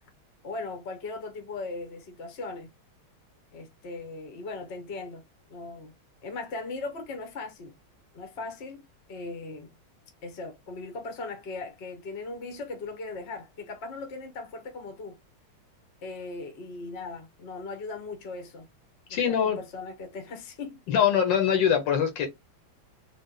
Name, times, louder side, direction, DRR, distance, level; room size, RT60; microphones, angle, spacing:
voice 1, 0.4-2.7 3.5-5.2 5.5-5.9 6.2-7.7 8.1-9.7 10.2-15.2 16.0-18.7 19.1-20.8, left 3 dB, 45° left, 0.8 m, -38 dB
voice 2, 19.1-19.6 20.9-22.3, left 8 dB, 70° left, 1.4 m, -23 dB
3.9 x 2.3 x 3.7 m
omnidirectional pair, 2.3 m